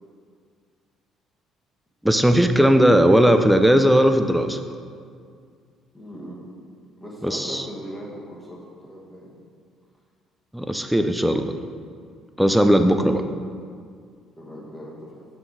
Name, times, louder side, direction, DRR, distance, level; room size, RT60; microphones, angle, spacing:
voice 1, 2.0-4.6 7.2-7.6 10.5-11.6 12.4-13.2, equal, 5° right, 7 dB, 0.3 m, -17 dB
voice 2, 5.9-6.4 7.0-9.3 14.4-15.2, equal, 10° left, -4 dB, 1.1 m, -39 dB
5.8 x 4.0 x 4.6 m, 2.1 s
cardioid pair, 95°, 0 cm